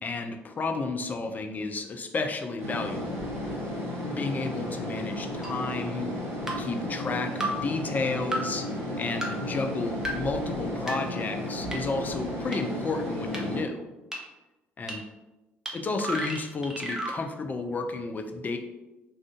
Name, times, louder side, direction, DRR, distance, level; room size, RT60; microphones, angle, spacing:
voice 1, 0.0-3.2 4.0-6.1 6.6-8.7 8.9-13.8 14.8-15.0 15.7-18.6, left 3 dB, 30° left, 5 dB, 0.4 m, -32 dB
sound 1, 2.6-13.6, left 1 dB, 40° right, 1.2 m, -34 dB
sound 2, 5.4-5.5 6.5-6.6 7.4-7.5 8.3-8.4 9.2-9.3 10.0-10.1 10.9-11.0 11.7-11.8 12.5-12.6 13.3-13.4 14.1-14.2 14.9-15.0 15.7-15.8 16.0-17.2, right 1 dB, 10° right, 0.7 m, -31 dB
2.5 x 2.4 x 3.5 m, 1.1 s
figure-of-eight pair, 50°, 6 cm